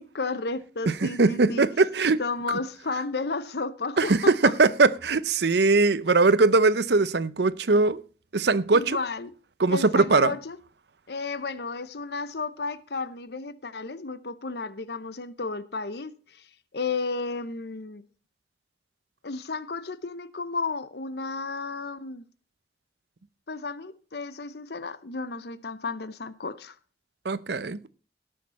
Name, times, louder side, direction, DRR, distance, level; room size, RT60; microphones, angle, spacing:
voice 1, 0.0-1.7 2.2-4.5 8.7-9.3 9.7-10.6 11.1-16.1 16.7-18.0 19.2-22.2 23.5-26.7, left 4 dB, 60° left, 0.8 m, -33 dB
voice 2, 0.9-2.2 4.0-8.0 8.3-9.0 9.6-10.3 27.2-27.9, right 3 dB, 65° right, 0.7 m, -21 dB
18.0 x 6.6 x 4.2 m
head